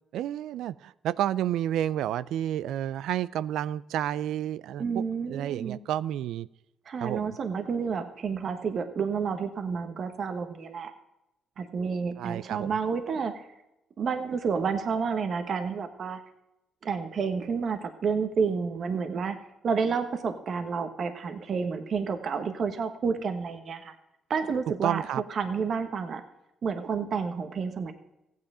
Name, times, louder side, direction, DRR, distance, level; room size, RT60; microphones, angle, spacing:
voice 1, 0.1-6.5 7.0-7.4 12.2-12.8 24.8-25.2, right 11 dB, 85° right, 20 dB, 0.4 m, -30 dB
voice 2, 4.8-5.8 6.8-10.9 11.6-13.4 14.0-16.2 16.8-19.4 19.6-24.0 24.3-25.0 25.3-26.2 26.6-27.9, right 5 dB, 55° right, 7 dB, 1.3 m, -30 dB
15.0 x 9.4 x 4.9 m, 0.90 s
cardioid pair, 90°, 0 cm